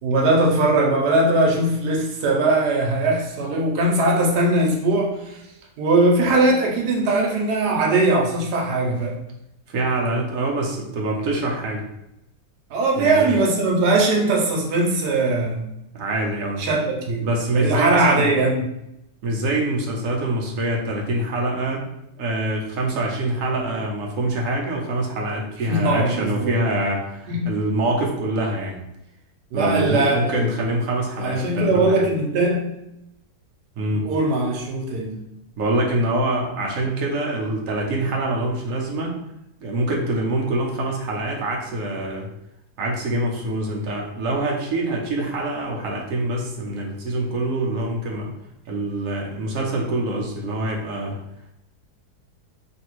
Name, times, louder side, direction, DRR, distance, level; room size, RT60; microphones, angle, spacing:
voice 1, 0.0-5.3 5.8-9.2 12.7-15.6 16.6-17.3 17.5-18.7 25.7-26.6 27.3-27.5 29.5-30.5 31.2-32.7 33.9-35.2, right 2 dB, 90° right, -1 dB, 1.3 m, -20 dB
voice 2, 9.7-11.8 13.0-13.3 15.9-16.6 17.2-18.3 19.2-21.9 22.2-28.8 29.5-32.0 33.8-34.1 35.6-39.2 39.6-42.3 42.8-48.3 48.7-51.2, right 1 dB, 65° right, -1 dB, 1.0 m, -25 dB
3.3 x 2.6 x 3.0 m, 0.84 s
omnidirectional pair, 1.7 m